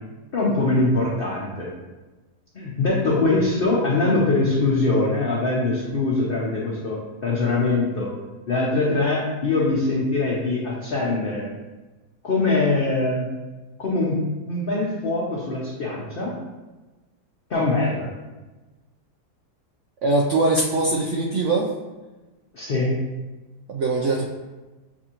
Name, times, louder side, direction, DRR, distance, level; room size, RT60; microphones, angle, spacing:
voice 1, 0.3-1.7 2.5-8.1 8.5-11.5 12.2-13.3 13.8-16.3 17.5-18.1 22.5-23.0, left 2 dB, 55° left, -5 dB, 0.6 m, -22 dB
voice 2, 20.0-21.7 23.7-24.3, right 2 dB, 75° right, -2 dB, 0.6 m, -21 dB
7.1 x 2.6 x 2.9 m, 1.2 s
omnidirectional pair, 1.8 m